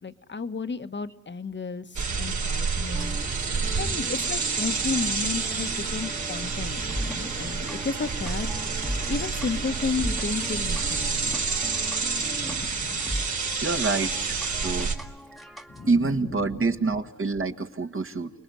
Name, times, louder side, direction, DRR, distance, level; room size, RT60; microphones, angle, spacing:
voice 1, 0.0-3.2 3.8-8.5 9.1-11.4 12.2-13.2 15.7-16.9, left 4 dB, 35° left, 10 dB, 1.4 m, -33 dB
sound 1, 1.9-14.9, right 4 dB, 70° right, 3.9 m, -29 dB
sound 2, 2.9-12.7, right 2 dB, 20° right, 1.7 m, -41 dB
sound 3, 6.9-15.9, equal, ahead, 1.5 m, -39 dB
voice 2, 13.6-14.9 15.9-18.3, right 3 dB, 45° right, 6 dB, 2.0 m, -27 dB
29.5 x 20.5 x 9.8 m, 0.92 s
cardioid pair, 70°, 30 cm